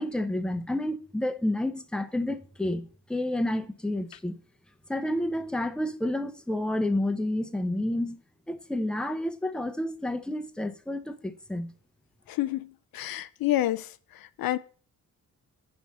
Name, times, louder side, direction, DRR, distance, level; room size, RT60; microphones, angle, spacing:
voice 1, 0.0-4.4 4.9-8.2 8.5-11.7, left 1 dB, 5° left, 0.7 m, -30 dB
voice 2, 12.3-13.9 14.4-14.6, left 14 dB, 80° left, 0.5 m, -28 dB
8.8 x 5.6 x 4.1 m
cardioid pair, 75°, 35 cm